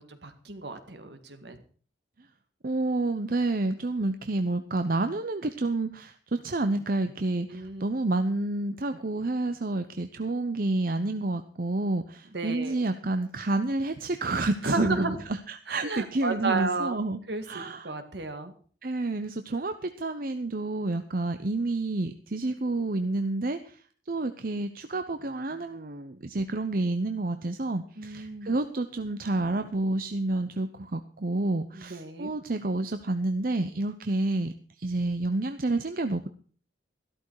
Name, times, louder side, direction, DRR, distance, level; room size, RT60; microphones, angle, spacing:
voice 1, 0.0-1.6 7.5-7.8 12.3-12.8 14.6-15.2 15.7-17.0 17.3-17.4 17.8-18.5 28.0-28.5 31.7-32.3, right 3 dB, 70° right, 8 dB, 2.1 m, -32 dB
voice 2, 2.6-17.2 17.5-18.0 18.8-23.8 24.1-36.3, right 2 dB, 50° right, 9 dB, 0.8 m, -29 dB
13.5 x 12.5 x 4.8 m, 0.43 s
head